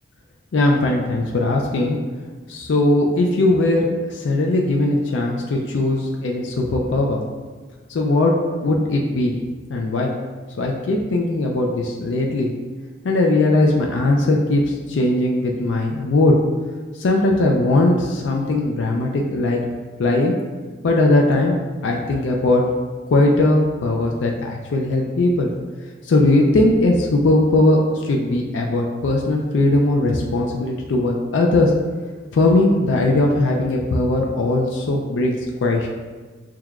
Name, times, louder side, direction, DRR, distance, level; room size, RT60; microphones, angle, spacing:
voice 1, 0.5-2.0 2.5-7.2 7.9-8.3 8.6-9.3 9.7-10.1 10.6-12.5 13.0-16.4 17.0-19.6 20.0-20.3 20.8-21.5 21.8-22.6 23.1-25.5 26.0-31.7 32.3-35.9, left 2 dB, 85° left, 0 dB, 0.4 m, -19 dB
6.1 x 2.3 x 2.3 m, 1.4 s
head